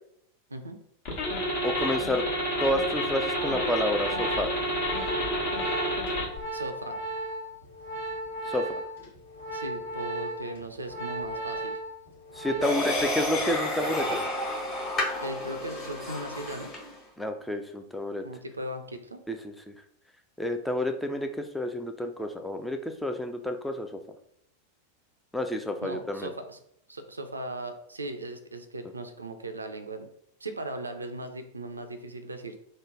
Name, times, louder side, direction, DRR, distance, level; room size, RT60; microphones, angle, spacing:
sound 1, 1.1-6.4, equal, 45° left, 1.1 m, -29 dB
voice 1, 1.6-2.2 2.6-4.5 8.5-8.8 12.4-14.2 17.2-18.2 19.3-19.5 20.4-24.0 25.3-26.3, left 1 dB, 5° left, 5 dB, 0.4 m, -30 dB
Organ, 3.0-13.0 13.3-13.6, right 1 dB, 65° left, 1.4 m, -36 dB
voice 2, 6.5-7.0 9.5-11.8 12.4-12.9 15.2-16.7 18.2-19.2 25.8-26.6 26.9-30.1 30.4-32.6, right 1 dB, 80° right, 7 dB, 0.4 m, -38 dB
sound 2, 12.6-16.9, left 1 dB, 25° left, 1.3 m, -31 dB
3.1 x 2.1 x 3.7 m, 0.72 s
figure-of-eight pair, 90°, 0 cm